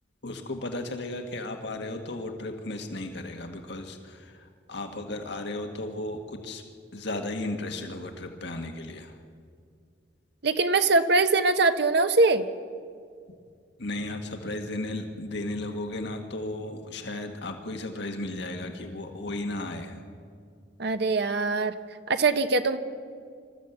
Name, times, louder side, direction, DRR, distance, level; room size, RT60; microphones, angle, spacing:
voice 1, 0.2-6.6 6.9-9.1 13.8-20.1, left 2 dB, 65° left, 4 dB, 1.7 m, -35 dB
voice 2, 10.4-12.5 20.8-21.7 22.1-22.8, right 3 dB, 65° right, 9 dB, 1.1 m, -22 dB
26.0 x 14.0 x 8.0 m, 2.2 s
head